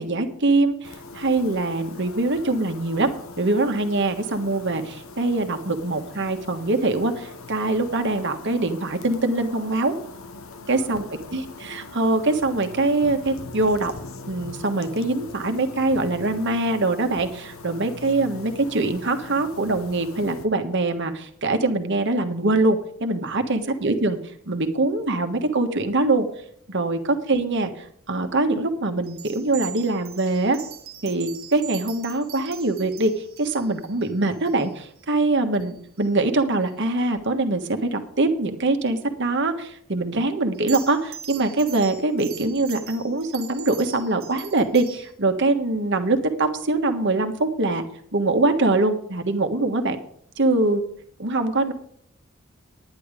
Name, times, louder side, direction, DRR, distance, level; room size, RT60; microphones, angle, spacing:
voice 1, 0.0-3.1 3.4-9.9 10.7-11.0 11.3-13.9 14.3-24.2 24.5-26.3 26.7-30.6 31.0-47.8 48.1-50.0 50.4-50.8 51.2-51.7, right 2 dB, 60° right, 6 dB, 1.4 m, -23 dB
sound 1, 0.8-20.5, left 3 dB, 80° left, 1.1 m, -41 dB
sound 2, 29.0-35.0 35.5-35.7 36.0-36.1 40.5-45.1, right 10 dB, 75° right, 1.5 m, -41 dB
10.5 x 10.0 x 5.1 m, 0.67 s
head